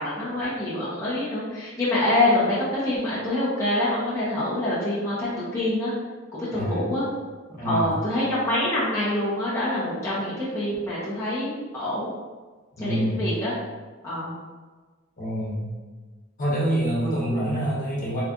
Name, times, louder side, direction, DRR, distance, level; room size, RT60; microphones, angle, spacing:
voice 1, 0.0-5.9 6.3-7.0 7.6-12.1 12.8-13.5 14.0-14.3, left 1 dB, 15° left, -11 dB, 0.8 m, -25 dB
voice 2, 6.5-6.9 7.5-8.0 12.7-13.3 15.2-15.7 16.4-18.2, equal, 45° left, -6 dB, 1.1 m, -26 dB
3.5 x 3.2 x 2.5 m, 1.4 s
head